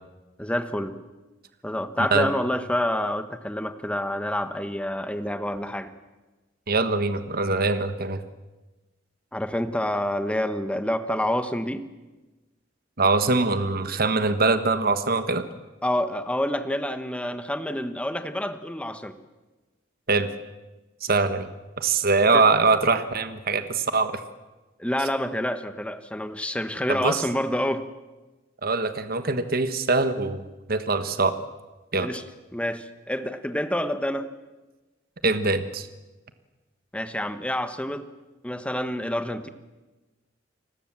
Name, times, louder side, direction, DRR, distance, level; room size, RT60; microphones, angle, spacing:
voice 1, 0.4-0.9 1.6-5.9 9.3-11.8 15.8-19.1 22.3-22.4 24.8-27.9 32.0-32.2 32.5-34.3 36.9-38.1 38.4-39.5, left 1 dB, 5° left, 10 dB, 1.3 m, -28 dB
voice 2, 6.7-8.2 13.0-15.4 20.1-20.3 21.0-21.5 21.8-24.2 26.9-27.2 28.6-30.4 30.7-31.3 31.9-32.1 35.2-35.9, right 3 dB, 50° right, 10 dB, 1.4 m, -23 dB
29.0 x 20.0 x 7.5 m, 1.2 s
head